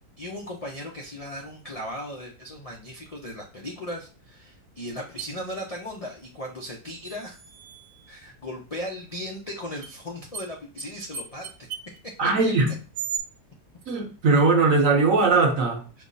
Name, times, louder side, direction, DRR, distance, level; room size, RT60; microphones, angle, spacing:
voice 1, 0.2-7.4 8.1-11.7 16.0-16.1, left 1 dB, 60° left, 0.3 m, -37 dB
sound 1, 5.2-5.3 7.0-8.1 9.8-9.9 10.3-10.5 10.8-10.9 11.1-12.0 12.9-13.2, right 7 dB, 90° right, 1.2 m, -35 dB
voice 2, 12.2-12.8 13.9-15.8, right 3 dB, 60° right, 1.2 m, -20 dB
5.1 x 2.1 x 3.8 m
omnidirectional pair, 1.7 m